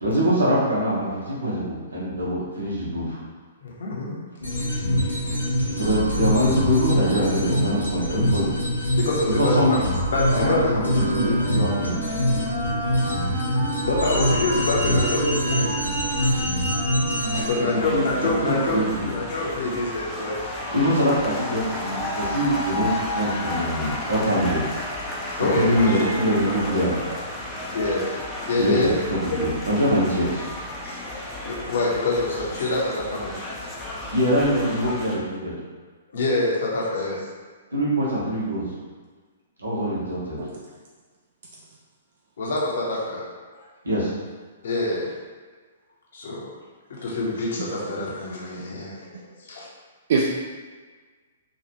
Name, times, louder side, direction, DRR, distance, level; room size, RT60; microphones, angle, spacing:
voice 1, 0.0-3.2 5.7-8.5 9.4-9.8 10.3-12.0 17.5-19.1 20.7-24.6 25.4-26.9 28.5-28.9 29.2-30.4 34.1-35.5 37.7-38.7 39.6-40.4 43.8-44.1, equal, 80° right, -8 dB, 1.1 m, -23 dB
voice 2, 3.6-4.2 9.0-9.8 10.1-10.9 13.8-15.9 17.3-18.9 19.1-20.4 25.3-26.1 26.4-26.6 27.7-28.1 28.4-28.9 30.8-33.5 33.9-34.1 36.1-37.2 42.4-43.2 43.5-43.7 44.6-45.1 46.1-46.5 46.9-49.1 49.4-49.7, left 2 dB, 55° left, -3 dB, 0.7 m, -26 dB
sound 1, 4.4-17.4, equal, 85° left, 0.9 m, -24 dB
Wind instrument woodwind instrument, 10.8-19.4, right 1 dB, 20° right, 1.2 m, -32 dB
voice 3, 11.2-11.3 15.9-16.0 17.3-17.5 27.1-27.2 40.4-40.5 47.6-47.7 50.1-50.2, right 5 dB, 50° right, -3 dB, 0.3 m, -25 dB
sound 2, 17.7-35.2, left 1 dB, 10° left, 0.5 m, -32 dB
3.0 x 2.3 x 2.9 m, 1.4 s
figure-of-eight pair, 115°, 0 cm